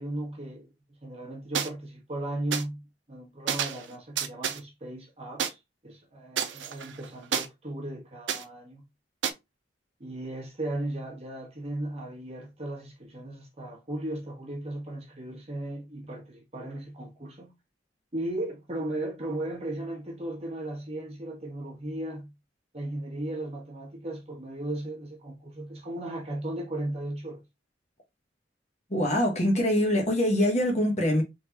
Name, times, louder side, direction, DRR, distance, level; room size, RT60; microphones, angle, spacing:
voice 1, 0.0-8.8 10.0-17.5 18.1-22.3 22.7-27.4, right 1 dB, 35° right, 1.3 m, -36 dB
sound 1, 1.5-1.7 2.5-2.6 3.5-3.9 4.2-4.6 5.4-5.5 6.4-7.5 8.3-8.4 9.2-9.3, right 8 dB, 90° right, 0.6 m, -29 dB
voice 2, 28.9-31.2, left 1 dB, 40° left, 1.3 m, -24 dB
3.7 x 3.7 x 2.9 m
head